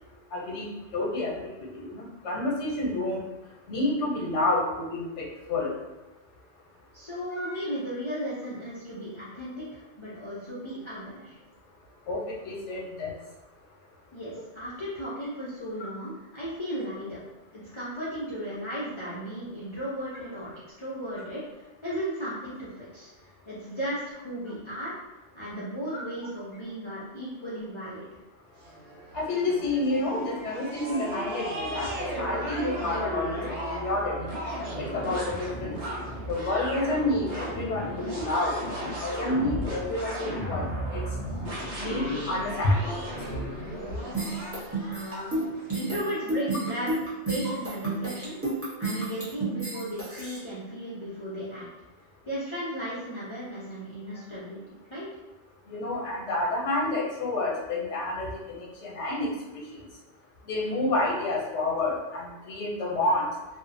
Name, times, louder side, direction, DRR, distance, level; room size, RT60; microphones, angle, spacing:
voice 1, 0.3-3.2 3.7-5.8 7.4-7.6 12.0-13.2 25.9-26.0 29.1-34.3 34.8-35.8 36.3-41.0 41.8-43.0 47.4-47.5 55.7-59.9 60.4-63.3, left 2 dB, 85° left, -3 dB, 1.0 m, -29 dB
voice 2, 6.9-11.4 14.1-17.2 17.5-20.5 20.8-21.4 21.8-24.9 25.3-28.1 43.9-44.3 44.8-45.3 45.6-48.4 48.8-51.7 52.2-55.1, equal, 45° left, -9 dB, 0.4 m, -35 dB
sound 1, 28.6-45.7, equal, 80° right, 1.0 m, -35 dB
sound 2, 44.1-50.4, right 2 dB, 15° right, 0.6 m, -31 dB
2.6 x 2.0 x 2.5 m, 1.1 s
omnidirectional pair, 1.2 m